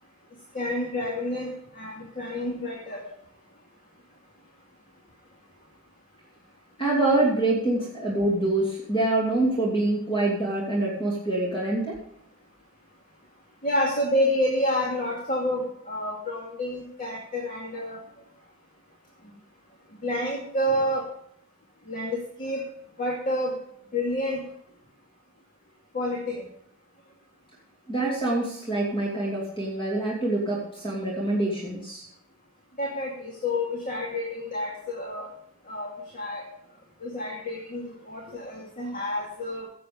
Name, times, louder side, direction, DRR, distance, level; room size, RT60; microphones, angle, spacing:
voice 1, 0.5-1.5 1.7-3.1 13.6-18.0 20.0-21.0 21.9-22.6 23.0-23.6 23.9-24.4 25.9-26.4 32.8-35.3 35.7-36.4 37.0-39.7, left 1 dB, 40° left, -2 dB, 2.4 m, -29 dB
voice 2, 6.8-12.0 27.9-32.1, right 2 dB, 20° left, -4 dB, 2.7 m, -25 dB
16.5 x 7.8 x 5.2 m, 0.70 s
head